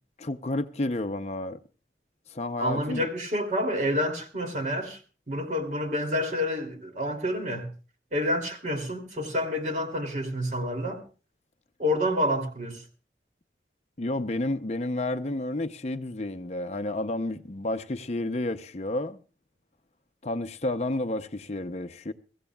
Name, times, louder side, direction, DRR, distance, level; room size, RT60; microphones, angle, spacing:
voice 1, 0.2-1.6 2.3-3.1 14.0-19.2 20.2-22.1, left 2 dB, 40° left, 0.6 m, -31 dB
voice 2, 2.6-5.0 5.3-7.7 8.1-11.0 11.8-12.8, left 1 dB, 40° right, 2.7 m, -28 dB
23.5 x 15.5 x 2.3 m
head